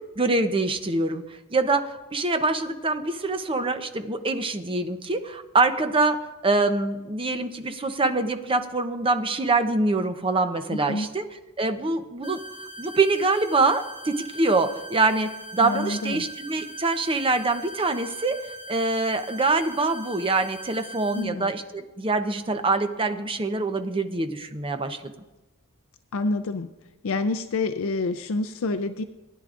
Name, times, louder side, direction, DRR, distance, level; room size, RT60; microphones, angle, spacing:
voice 1, 0.2-6.2 6.4-11.2 11.6-12.4 12.8-18.4 18.7-25.0, right 3 dB, 25° right, 7 dB, 0.7 m, -24 dB
voice 2, 10.7-11.1 15.6-16.3 21.1-21.5 26.1-26.7 27.0-29.0, left 3 dB, 65° left, 9 dB, 0.5 m, -28 dB
sound 1, 12.2-21.2, right 1 dB, 35° left, 3.6 m, -41 dB
19.0 x 10.5 x 2.5 m, 1.1 s
head